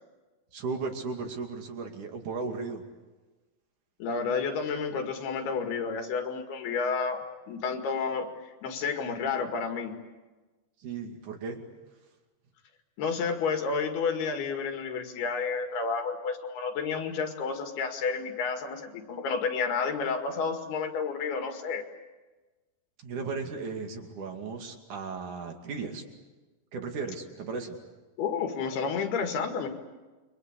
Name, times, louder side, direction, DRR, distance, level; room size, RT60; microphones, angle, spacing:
voice 1, 0.5-2.8 10.8-11.6 23.0-26.0 26.7-27.8, right 4 dB, 55° right, 4 dB, 3.7 m, -36 dB
voice 2, 4.0-7.2 7.5-9.9 13.0-21.9 28.2-29.7, left 5 dB, 75° left, 5 dB, 4.1 m, -30 dB
29.0 x 24.0 x 8.4 m, 1.2 s
omnidirectional pair, 4.6 m